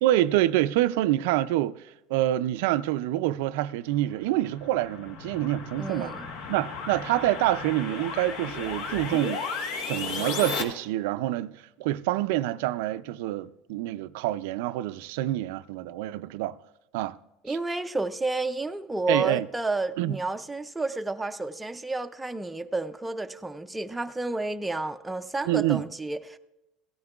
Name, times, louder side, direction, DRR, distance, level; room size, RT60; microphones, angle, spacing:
voice 1, 0.0-6.1 6.5-9.4 9.8-16.6 16.9-17.2 17.5-17.6 19.1-19.5 20.0-20.2 25.5-25.8, right 14 dB, 85° right, 0.3 m, -27 dB
sound 1, 4.1-10.6, left 4 dB, 85° left, 1.2 m, -35 dB
voice 2, 5.8-6.3 17.4-26.4, right 2 dB, 5° right, 0.3 m, -31 dB
17.0 x 13.0 x 2.3 m
cardioid pair, 170°, 0 cm